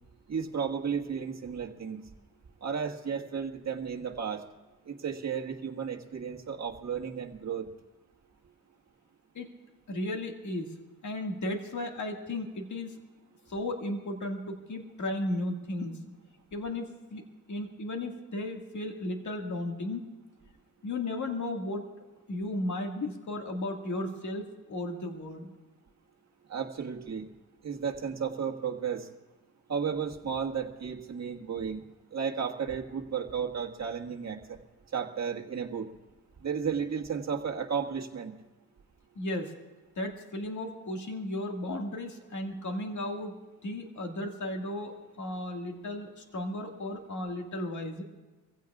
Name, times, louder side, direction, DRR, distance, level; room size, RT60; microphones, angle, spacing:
voice 1, 0.3-2.0 2.6-4.4 4.8-7.7 26.5-27.3 27.6-29.1 29.7-31.8 32.1-34.6 34.9-35.9 36.4-38.3, right 6 dB, 45° right, 1 dB, 1.6 m, -33 dB
voice 2, 9.9-10.7 11.0-13.0 13.5-15.9 16.5-17.2 17.5-20.0 20.8-21.9 22.3-25.5 39.2-39.5 40.0-43.3 43.6-48.0, left 1 dB, 50° left, 3 dB, 1.9 m, -35 dB
25.0 x 16.0 x 2.4 m, 1.2 s
cardioid pair, 95°, 37 cm